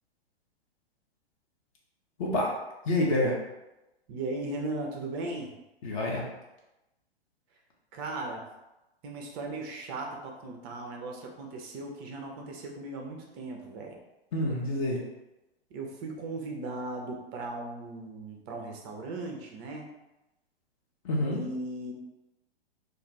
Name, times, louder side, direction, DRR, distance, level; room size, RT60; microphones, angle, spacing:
voice 1, 2.9-3.3 5.8-6.2 14.3-15.0 21.0-21.4, left 1 dB, 35° left, -2 dB, 0.6 m, -27 dB
voice 2, 4.1-5.5 7.9-8.4 9.0-14.0 15.7-19.9 21.3-21.9, right 2 dB, 25° right, 1 dB, 0.4 m, -37 dB
2.4 x 2.3 x 3.2 m, 0.97 s
figure-of-eight pair, 110°, 31 cm